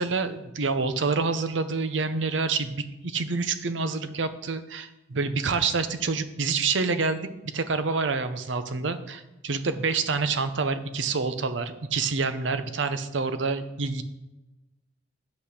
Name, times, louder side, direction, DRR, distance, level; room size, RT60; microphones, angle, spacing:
voice 1, 0.0-7.3 7.5-14.0, right 4 dB, 75° right, 11 dB, 0.7 m, -27 dB
8.1 x 5.7 x 6.5 m, 1.0 s
head